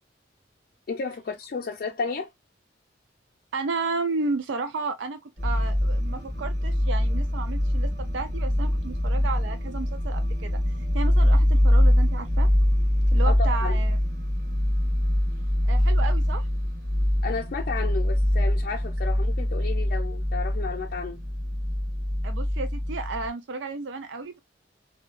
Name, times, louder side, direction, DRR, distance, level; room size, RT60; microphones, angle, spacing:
voice 1, 0.9-2.3 13.3-13.8 17.2-21.2, left 4 dB, 55° left, 0.4 m, -32 dB
voice 2, 3.5-10.6 10.9-12.5 13.1-14.0 15.7-16.5 22.2-24.4, right 3 dB, 80° right, 0.4 m, -32 dB
sound 1, 5.4-23.3, left 1 dB, 45° right, 1.1 m, -23 dB
2.8 x 2.2 x 2.3 m
head